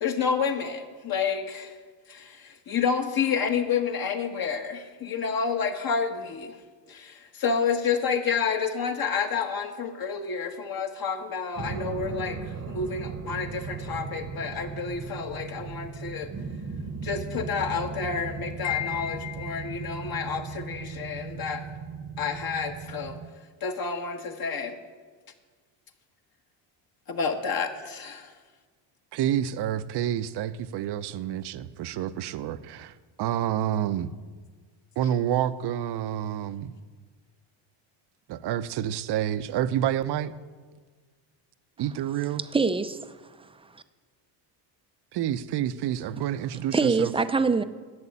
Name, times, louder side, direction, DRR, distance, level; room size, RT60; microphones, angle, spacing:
voice 1, 0.0-1.8 2.1-6.6 6.9-16.3 17.0-21.6 22.2-23.2 23.6-24.8 27.1-28.3, left 6 dB, 45° left, 1.5 m, -29 dB
sound 1, 11.6-23.3, right 5 dB, 30° right, 1.0 m, -37 dB
Wind chime, 18.6-20.0, left 12 dB, 70° left, 0.7 m, -34 dB
voice 2, 29.1-34.1 35.0-36.7 38.3-40.3 41.8-42.4 45.1-47.1, right 11 dB, 55° right, 0.8 m, -28 dB
voice 3, 42.5-43.1 43.7-43.8 46.7-47.6, right 4 dB, 10° right, 0.5 m, -24 dB
11.0 x 7.9 x 8.6 m
cardioid pair, 100°, 49 cm